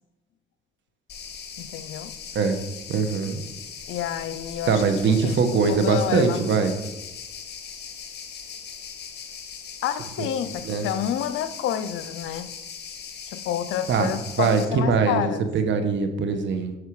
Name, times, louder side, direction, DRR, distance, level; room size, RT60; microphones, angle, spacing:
sound 1, 1.1-14.7, left 7 dB, 55° left, 1.6 m, -39 dB
voice 1, 1.6-2.1 3.9-4.8 5.1-5.4 5.7-6.4 9.8-12.5 13.3-15.4, left 10 dB, 85° left, 0.7 m, -29 dB
voice 2, 2.9-3.4 4.7-6.7 10.6-10.9 13.9-14.1 14.4-16.8, right 5 dB, 70° right, 1.4 m, -22 dB
11.0 x 6.6 x 4.9 m
cardioid pair, 90°, 20 cm